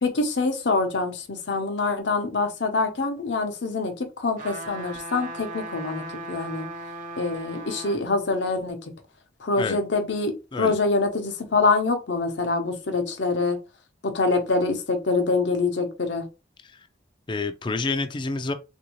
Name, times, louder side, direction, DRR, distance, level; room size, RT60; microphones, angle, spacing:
voice 1, 0.0-6.7 7.2-8.8 9.4-13.6 14.0-16.3, left 3 dB, 70° left, 0.8 m, -25 dB
sound 1, 4.4-8.0 8.5-8.6, right 2 dB, 45° right, 0.9 m, -37 dB
voice 2, 17.3-18.5, left 3 dB, 25° left, 0.4 m, -28 dB
3.4 x 2.6 x 3.0 m
head